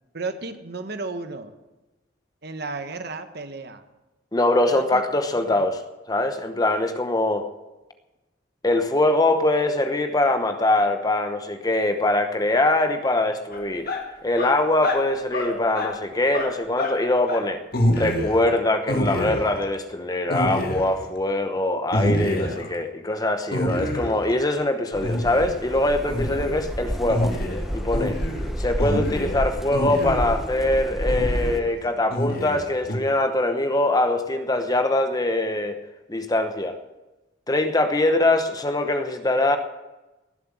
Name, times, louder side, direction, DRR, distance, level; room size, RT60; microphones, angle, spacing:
voice 1, 0.1-1.5 2.4-3.8 4.7-5.0 5.3-5.7 22.3-22.6 26.2-26.5 38.2-38.3, right 3 dB, 60° right, 9 dB, 1.2 m, -34 dB
voice 2, 4.3-5.8 6.1-7.4 8.6-13.9 14.2-17.6 17.9-27.3 27.7-28.2 28.6-35.8 36.1-36.8 37.5-39.6, left 2 dB, 20° left, 7 dB, 0.9 m, -23 dB
sound 1, 13.5-14.0 14.4-15.0 15.3-16.0 16.3-17.0 17.3-17.4 17.7-18.5 18.9-19.7 20.3-21.1 21.9-22.7 23.5-24.3 25.0-25.6 26.1-26.7 27.1-30.5 31.1-31.7 32.1-33.0, left 1 dB, 55° left, 2.0 m, -27 dB
sound 2, 24.9-31.6, equal, ahead, 0.6 m, -30 dB
18.0 x 7.7 x 7.6 m, 1.1 s
head